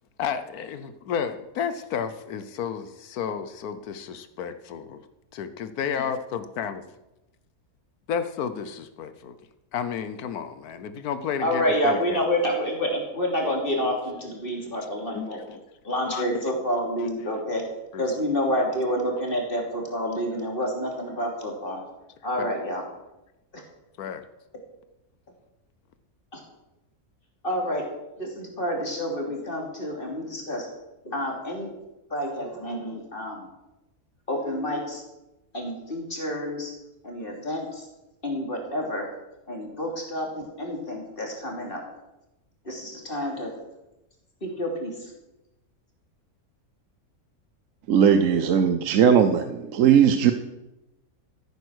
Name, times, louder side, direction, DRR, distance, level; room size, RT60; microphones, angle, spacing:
voice 1, 0.2-5.0 5.3-6.8 8.1-9.4 9.7-12.2 15.1-15.6 16.1-16.3 17.9-18.0 22.4-22.5 24.0-24.2, left 7 dB, 90° left, 11 dB, 1.3 m, -32 dB
voice 2, 11.4-15.4 15.8-17.7 18.0-21.8 22.2-22.9 23.5-23.6 26.3-26.4 27.4-27.9 28.2-30.7 31.0-31.7 32.1-33.5 34.3-35.0 35.5-36.7 37.0-37.9 38.2-39.1 39.5-41.8 42.6-43.5 44.4-45.1, equal, 35° left, 0 dB, 3.2 m, -28 dB
voice 3, 47.9-50.3, right 8 dB, 65° right, 8 dB, 1.1 m, -18 dB
14.0 x 9.3 x 6.3 m, 0.96 s
omnidirectional pair, 1.5 m